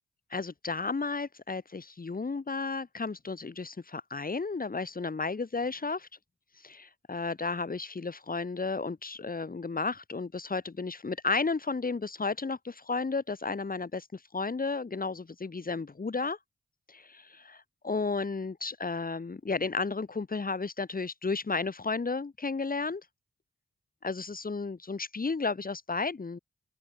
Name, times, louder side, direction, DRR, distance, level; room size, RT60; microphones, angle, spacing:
voice 1, 0.3-6.1 6.5-16.4 16.9-23.0 24.0-26.4, left 4 dB, 50° left, 5.1 m, -33 dB
open air
cardioid pair, 50°, 20 cm